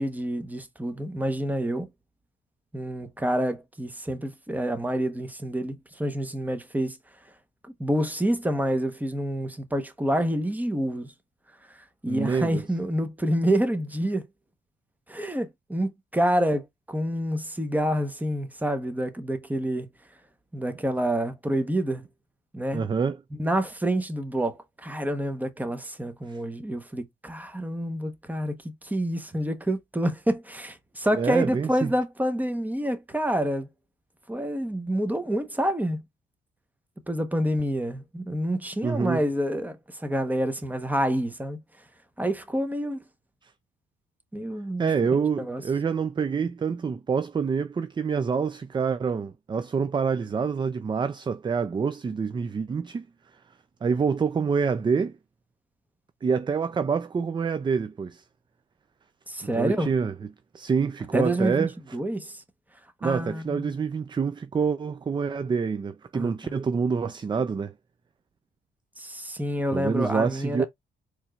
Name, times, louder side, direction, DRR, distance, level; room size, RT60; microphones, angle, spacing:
voice 1, 0.0-1.9 2.7-7.0 7.8-11.1 11.7-14.2 15.1-19.9 20.5-22.1 22.5-22.8 23.4-33.7 34.3-36.0 37.1-41.6 42.2-43.0 44.3-44.9 45.4-45.6 59.3-59.9 61.1-61.7 61.9-62.4 63.0-63.7 66.1-66.5 69.0-70.7, right 1 dB, 10° right, 1.0 m, -28 dB
voice 2, 12.1-12.6 22.7-23.2 26.3-26.4 31.1-31.9 38.8-39.2 43.4-43.5 44.8-53.1 53.8-55.2 56.2-58.2 59.5-60.1 60.5-61.7 63.0-67.7 69.7-70.6, right 5 dB, 25° right, 0.4 m, -26 dB
4.3 x 3.1 x 2.4 m
cardioid pair, 90°, 20 cm